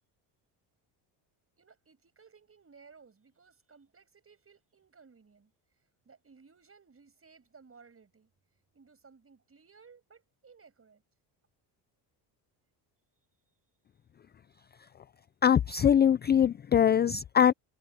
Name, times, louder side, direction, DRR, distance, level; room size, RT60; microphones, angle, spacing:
voice 1, 1.6-5.5 6.0-8.3 8.7-11.0, right 5 dB, 30° right, 6.0 m, -58 dB
voice 2, 15.4-17.5, left 8 dB, 25° left, 0.3 m, -22 dB
supercardioid pair, 90°, 49 cm